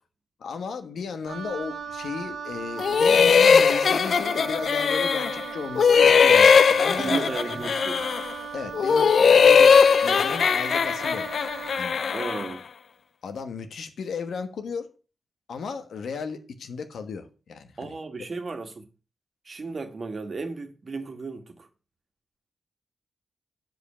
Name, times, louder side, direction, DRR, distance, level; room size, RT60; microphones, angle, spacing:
voice 1, 0.4-7.6 8.5-11.9 13.2-14.9 15.5-17.9, left 5 dB, 85° left, 1.2 m, -35 dB
Wind instrument woodwind instrument, 1.3-11.9, right 6 dB, 80° right, 1.6 m, -38 dB
sound 1, 2.8-5.4 5.8-8.3 8.7-12.5, left 6 dB, 65° left, 0.4 m, -19 dB
voice 2, 7.0-8.0 12.1-12.7 17.8-18.8 19.4-21.7, right 3 dB, 45° right, 1.6 m, -34 dB
7.8 x 5.2 x 5.7 m
cardioid pair, 95°, 0 cm